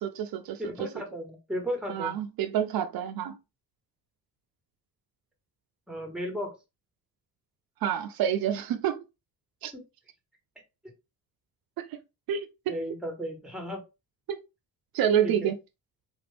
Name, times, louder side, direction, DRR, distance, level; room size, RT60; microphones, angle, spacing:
voice 1, 0.0-0.6 1.9-3.4 7.8-9.0 9.6-9.7 11.8-12.0 12.3-12.7 14.3-14.4 14.9-15.6, right 9 dB, 75° right, 0.5 m, -28 dB
voice 2, 0.6-2.2 5.9-6.6 9.7-9.8 12.7-13.8 15.2-15.5, equal, ahead, 1.2 m, -35 dB
3.7 x 2.5 x 3.3 m
cardioid pair, 130°, 36 cm